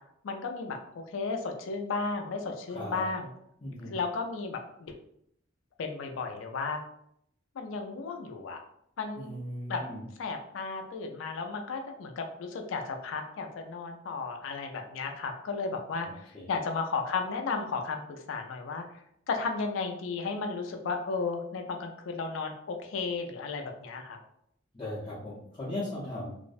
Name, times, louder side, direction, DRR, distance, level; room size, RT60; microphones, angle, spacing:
voice 1, 0.2-3.3 3.9-4.9 5.8-6.8 7.6-8.6 9.0-9.3 9.7-9.8 10.2-18.8 19.3-24.2, left 4 dB, 80° left, 4 dB, 0.4 m, -34 dB
voice 2, 2.7-3.0 3.6-3.9 9.2-10.0 16.0-16.5 24.7-26.4, left 1 dB, 25° left, -9 dB, 0.5 m, -38 dB
2.4 x 2.0 x 2.5 m, 0.73 s
head